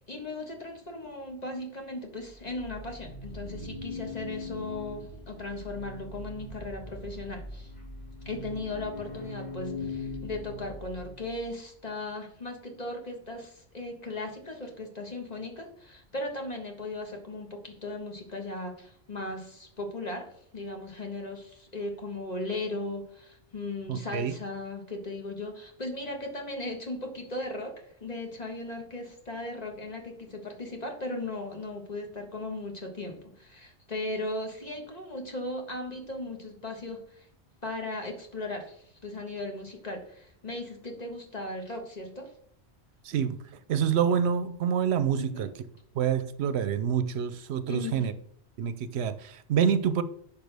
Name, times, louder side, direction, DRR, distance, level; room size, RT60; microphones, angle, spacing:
voice 1, 0.1-7.7 8.2-37.3 37.6-42.3 45.2-45.5 47.7-48.1, left 2 dB, 35° left, 1.5 m, -37 dB
sound 1, 2.2-11.5, left 2 dB, 65° left, 3.4 m, -41 dB
voice 2, 23.9-24.3 43.0-43.4 43.7-45.5 45.9-48.1 48.6-50.0, right 8 dB, 75° right, 0.8 m, -27 dB
10.5 x 5.8 x 3.4 m
omnidirectional pair, 1.1 m